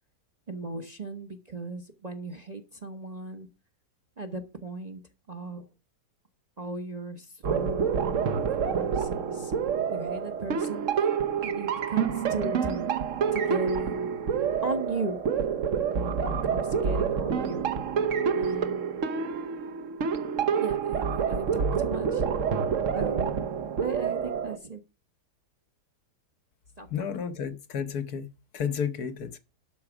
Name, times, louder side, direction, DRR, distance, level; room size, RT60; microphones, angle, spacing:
voice 1, 0.5-3.5 4.2-5.0 5.3-5.7 6.6-8.4 8.7-9.5 9.9-11.1 11.4-12.9 13.3-14.2 14.6-15.2 16.2-17.6 18.3-19.0 20.5-22.2 22.9-23.5 23.8-24.8 26.8-27.1, right 3 dB, 30° right, 0.9 m, -37 dB
sound 1, 7.4-24.6, right 6 dB, 55° right, 1.1 m, -28 dB
voice 2, 26.9-29.4, left 7 dB, 65° left, 1.4 m, -32 dB
12.0 x 4.7 x 6.0 m
omnidirectional pair, 1.8 m